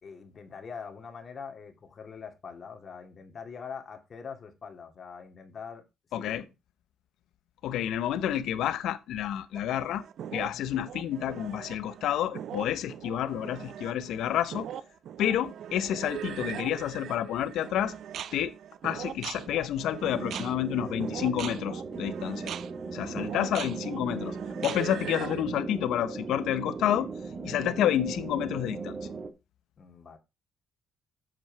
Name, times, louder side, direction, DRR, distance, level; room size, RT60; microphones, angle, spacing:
voice 1, 0.0-5.8 6.2-6.5 10.5-10.8 23.0-23.4 26.8-27.0 29.8-30.2, left 6 dB, 45° left, 2.3 m, -44 dB
voice 2, 6.1-6.4 7.6-10.0 10.3-14.7 15.2-18.0 18.3-18.5 18.8-22.5 22.9-24.4 24.6-27.1 27.4-29.0, left 11 dB, 80° left, 0.9 m, -29 dB
sound 1, 9.5-25.4, right 9 dB, 70° right, 0.6 m, -40 dB
sound 2, 20.0-29.3, right 4 dB, 40° right, 1.4 m, -38 dB
7.7 x 7.6 x 4.6 m
cardioid pair, 90°, 0 cm